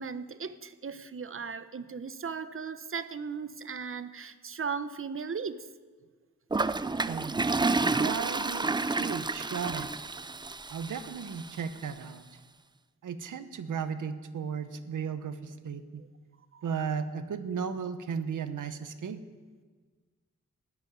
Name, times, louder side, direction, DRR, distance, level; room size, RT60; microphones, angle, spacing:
voice 1, 0.0-5.7 16.5-16.7, right 5 dB, 45° right, 13 dB, 0.8 m, -37 dB
Toilet flush, 6.5-11.6, right 3 dB, 15° right, 0.4 m, -30 dB
voice 2, 7.1-7.4 8.0-10.1 10.7-12.2 13.0-16.0 16.6-19.2, right 6 dB, 85° right, 11 dB, 1.0 m, -35 dB
13.5 x 8.8 x 9.4 m, 1.5 s
wide cardioid pair, 90°, 30 cm